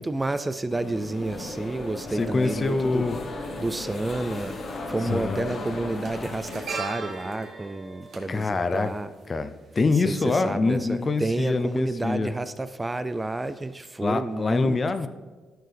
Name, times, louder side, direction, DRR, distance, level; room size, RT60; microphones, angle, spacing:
voice 1, 0.0-3.1 3.6-4.6 4.9-9.1 10.0-14.8, right 2 dB, 15° right, 12 dB, 0.3 m, -30 dB
sound 1, 0.7-6.7, left 2 dB, 50° left, 1.2 m, -35 dB
voice 2, 2.1-3.2 5.1-5.5 8.3-8.9 9.3-12.3 14.0-15.1, left 3 dB, 35° left, 10 dB, 0.5 m, -25 dB
sound 2, 4.9-5.1 5.4-9.7 10.0-10.1, right 4 dB, 55° right, 1.5 m, -38 dB
12.0 x 4.5 x 3.4 m, 1.3 s
cardioid pair, 80°, 0 cm